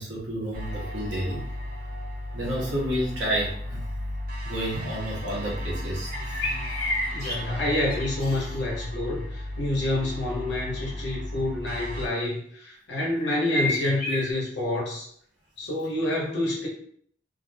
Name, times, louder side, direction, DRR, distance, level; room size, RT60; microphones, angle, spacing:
voice 1, 0.0-1.5 2.3-3.8 4.4-6.4, equal, 85° right, -4 dB, 0.9 m, -30 dB
sound 1, 0.5-12.1, left 1 dB, 55° right, 0.5 m, -35 dB
sound 2, 6.1-8.5 13.2-14.3, left 1 dB, 15° left, 1.0 m, -31 dB
voice 2, 7.1-15.1 15.6-16.7, left 1 dB, 70° left, -3 dB, 0.7 m, -28 dB
2.4 x 2.0 x 2.6 m, 0.62 s
head